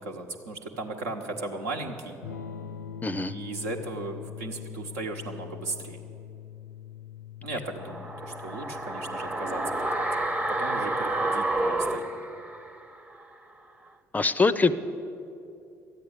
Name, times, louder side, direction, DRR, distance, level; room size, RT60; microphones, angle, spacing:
voice 1, 0.0-2.2 3.3-6.0 7.4-12.1, right 2 dB, 70° right, 3 dB, 1.1 m, -36 dB
Electric guitar / Strum, 2.2-12.0, left 9 dB, 80° left, 0.5 m, -44 dB
voice 2, 3.0-3.3 14.1-14.8, left 3 dB, 20° left, 13 dB, 0.5 m, -23 dB
sound 1, 7.8-12.9 13.2-13.3, right 2 dB, 15° right, 0.9 m, -29 dB
13.0 x 9.4 x 8.7 m, 2.6 s
figure-of-eight pair, 55°, 9 cm